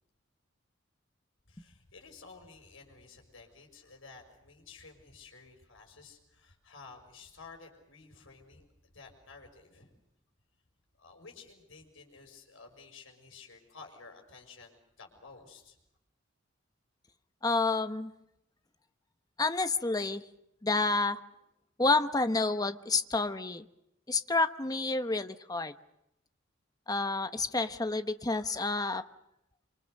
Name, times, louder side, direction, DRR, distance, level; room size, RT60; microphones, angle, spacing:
voice 1, 1.5-9.9 11.0-15.8, left 4 dB, 80° left, 3 dB, 6.0 m, -53 dB
voice 2, 17.4-18.1 19.4-20.2 20.6-21.2 21.8-23.6 24.1-25.7 26.9-29.0, left 3 dB, 20° left, 10 dB, 1.0 m, -29 dB
26.5 x 26.0 x 6.6 m, 0.83 s
head